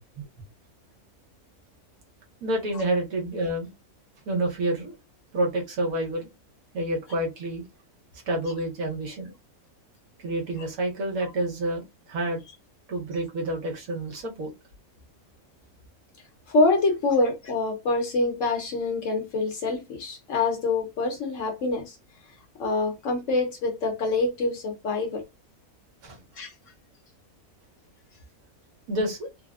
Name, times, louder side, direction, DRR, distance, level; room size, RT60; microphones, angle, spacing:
voice 1, 2.4-3.7 4.3-4.9 5.3-6.3 6.7-7.6 8.3-9.3 10.2-12.4 12.9-14.5 26.0-26.2 28.9-29.3, right 1 dB, 70° right, 1.3 m, -28 dB
voice 2, 16.5-22.0 22.6-25.2 26.4-26.5, left 3 dB, 60° left, 1.0 m, -25 dB
3.3 x 2.0 x 2.3 m
omnidirectional pair, 1.6 m